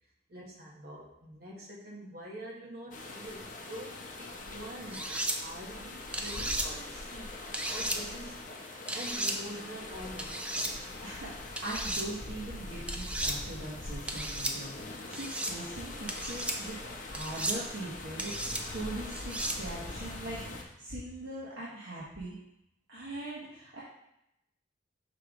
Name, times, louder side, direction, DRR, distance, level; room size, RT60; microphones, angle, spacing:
voice 1, 0.3-5.1 5.4-7.4 7.7-10.5, equal, 55° right, -1 dB, 1.3 m, -45 dB
sound 1, 2.9-20.6, left 2 dB, 45° left, 0.7 m, -43 dB
sound 2, 4.9-5.4 6.1-6.7 7.5-8.0 8.9-9.4 10.2-10.7 11.6-12.0 12.9-13.3 14.1-14.5 15.1-15.5 16.1-16.6 17.1-17.6 18.2-18.6 19.1-19.6, right 1 dB, 5° right, 0.4 m, -34 dB
voice 2, 10.7-16.8 17.1-22.4 22.9-23.8, right 1 dB, 80° right, -8 dB, 1.4 m, -41 dB
5.9 x 4.9 x 3.6 m, 0.82 s
head